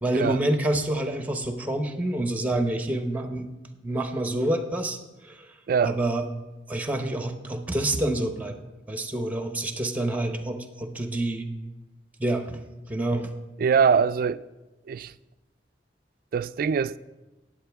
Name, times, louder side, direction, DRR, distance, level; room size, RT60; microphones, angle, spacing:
voice 1, 0.0-3.5 3.8-5.0 5.2-5.5 5.8-6.2 6.7-8.6 8.9-11.5 12.2-12.6 12.9-13.3, right 1 dB, 10° right, 0.9 m, -27 dB
voice 2, 5.7-6.0 13.6-14.4 14.9-15.1 16.3-17.0, right 6 dB, 55° right, 0.3 m, -23 dB
19.5 x 7.7 x 3.5 m
head